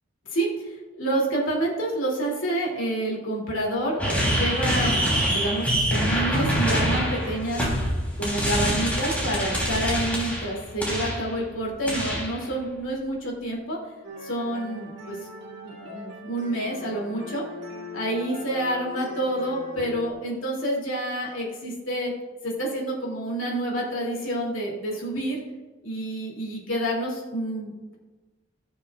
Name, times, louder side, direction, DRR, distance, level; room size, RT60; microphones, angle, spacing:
voice 1, 0.3-7.6 8.2-13.8 14.2-15.2 15.6-17.4 17.9-22.1 22.4-25.4 25.8-27.9, right 1 dB, 80° left, -2 dB, 2.7 m, -28 dB
sound 1, 4.0-11.3 11.9-12.4, equal, 10° left, 3.2 m, -25 dB
sound 2, 14.0-20.1, equal, 60° right, 1.9 m, -40 dB
18.5 x 7.2 x 2.4 m, 1.2 s
head